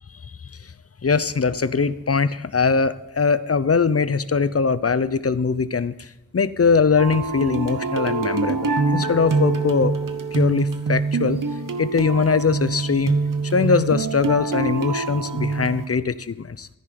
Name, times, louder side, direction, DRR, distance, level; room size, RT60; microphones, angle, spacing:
voice 1, 1.0-6.1 6.3-9.9 10.3-11.4 11.8-13.2 13.5-16.7, left 5 dB, 50° left, 15 dB, 0.7 m, -21 dB
sound 1, 7.0-15.9, right 4 dB, 80° right, 0.9 m, -25 dB
14.0 x 9.9 x 5.2 m, 0.98 s
wide cardioid pair, 45°, 32 cm